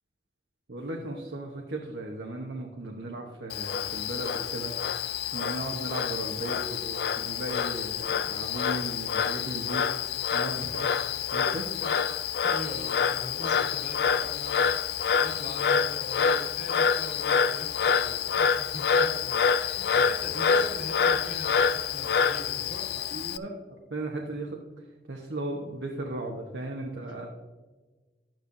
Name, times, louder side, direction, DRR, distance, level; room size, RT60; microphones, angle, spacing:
voice 1, 0.7-4.8 5.3-9.9 10.3-10.9 11.3-11.7 23.0-23.5 23.9-24.6 25.1-27.3, right 2 dB, 90° right, 0 dB, 1.1 m, -36 dB
Frog, 3.5-23.4, left 6 dB, 65° left, 0.4 m, -27 dB
voice 2, 12.4-22.8, equal, 50° left, -3 dB, 2.9 m, -42 dB
11.5 x 9.2 x 2.7 m, 1.3 s
head